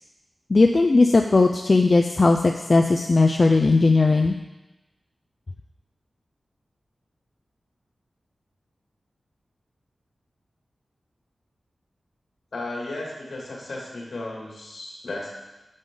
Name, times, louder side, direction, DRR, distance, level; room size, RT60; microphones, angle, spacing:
voice 1, 0.5-4.3, left 3 dB, 50° left, 3 dB, 0.4 m, -18 dB
voice 2, 12.5-15.3, left 2 dB, 75° left, -3 dB, 2.3 m, -34 dB
9.0 x 5.3 x 3.8 m, 1.1 s
cardioid pair, 55°, 0 cm